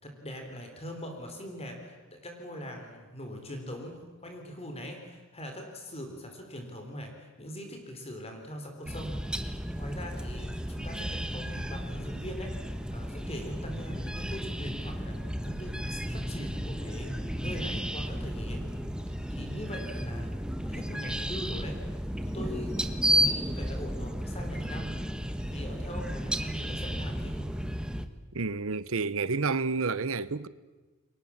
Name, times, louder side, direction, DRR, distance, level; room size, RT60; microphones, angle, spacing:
voice 1, 0.0-18.7 19.3-20.4 20.7-21.8 22.2-25.0 25.5-27.4, equal, 30° left, 4.0 m, -42 dB
sound 1, 8.8-28.1, equal, 5° right, 1.2 m, -33 dB
voice 2, 28.3-30.5, right 4 dB, 65° right, 1.0 m, -29 dB
30.0 x 23.5 x 7.4 m
head